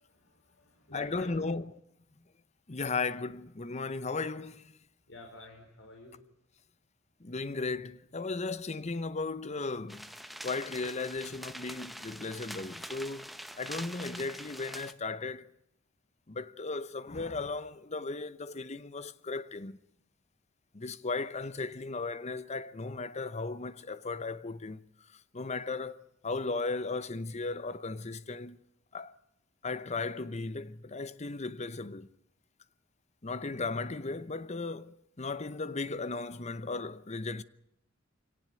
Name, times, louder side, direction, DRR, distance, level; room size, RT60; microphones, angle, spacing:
voice 1, 0.0-1.5 5.1-6.2, left 2 dB, 80° left, 4.7 m, -51 dB
voice 2, 0.9-1.6 2.7-4.7 7.2-10.1 10.4-15.5 16.3-19.8 20.7-24.9 25.1-28.6 28.9-29.2 29.6-32.1 33.2-37.4, left 3 dB, 35° left, 0.8 m, -36 dB
sound 1, 9.9-14.9, equal, ahead, 1.0 m, -44 dB
24.0 x 18.0 x 9.2 m
head